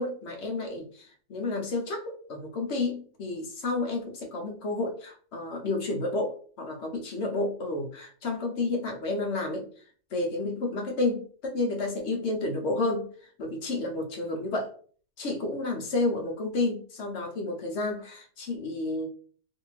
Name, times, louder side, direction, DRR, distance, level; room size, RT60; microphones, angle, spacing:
voice 1, 0.0-9.7 10.1-13.1 13.4-14.7 15.2-19.1, left 2 dB, 60° left, 1 dB, 0.9 m, -31 dB
2.6 x 2.6 x 3.0 m, 0.44 s
omnidirectional pair, 1.6 m